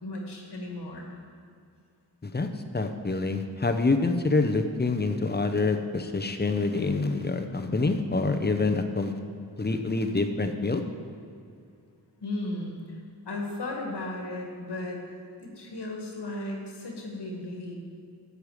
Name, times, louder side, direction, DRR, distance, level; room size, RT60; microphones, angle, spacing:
voice 1, 0.0-1.1 12.2-13.0 13.2-15.0 15.4-17.8, left 2 dB, 85° left, 0 dB, 1.9 m, -35 dB
voice 2, 2.7-9.1 9.6-10.8, left 3 dB, 25° left, 6 dB, 0.8 m, -26 dB
12.0 x 8.1 x 5.0 m, 2.3 s
wide cardioid pair, 90°, 40 cm